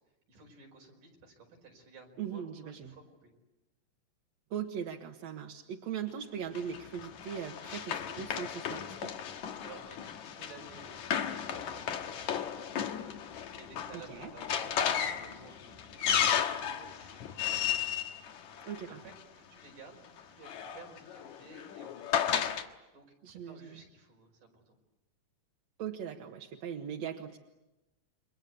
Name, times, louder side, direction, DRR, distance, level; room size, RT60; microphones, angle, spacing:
voice 1, 0.3-3.3 9.6-13.1 13.6-18.0 18.9-24.7, right 4 dB, 90° right, 3 dB, 6.7 m, -55 dB
voice 2, 2.2-2.9 4.5-9.1 13.9-14.3 18.6-19.0 23.2-23.8 25.8-27.4, right 8 dB, 65° right, 2 dB, 2.5 m, -39 dB
Run, 6.6-19.2 20.2-22.7, left 8 dB, 70° left, 2.6 m, -34 dB
29.5 x 24.5 x 8.3 m, 1.0 s
omnidirectional pair, 3.6 m